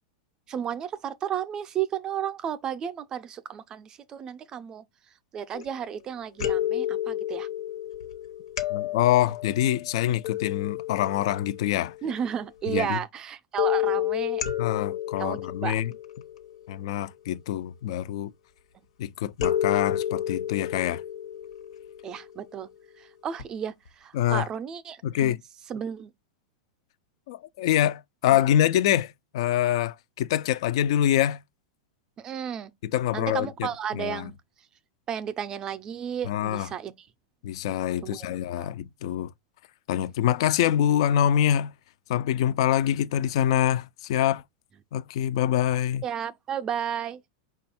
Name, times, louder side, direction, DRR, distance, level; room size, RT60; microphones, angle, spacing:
voice 1, 0.5-4.8 5.3-7.5 12.0-14.5 15.2-15.8 22.0-22.7 23.0-25.4 25.7-26.1 32.2-32.7 33.1-34.3 35.1-37.1 38.0-38.3 38.6-38.7 46.0-47.2, right 9 dB, 20° right, 0.4 m, -33 dB
sound 1, 5.5-6.0 6.4-12.0 13.6-16.8 19.4-22.7 23.4-23.5 23.9-24.0, left 11 dB, 75° left, 1.0 m, -31 dB
voice 2, 8.7-11.9 12.7-13.0 14.6-15.9 16.7-18.3 19.0-21.0 24.1-24.5 25.0-25.4 27.3-31.4 32.8-33.7 33.9-34.3 36.3-36.7 37.4-39.3 39.9-41.7 42.1-44.4 44.9-46.0, left 11 dB, 60° left, 0.3 m, -25 dB
5.1 x 2.3 x 4.2 m
supercardioid pair, 150°, 3 cm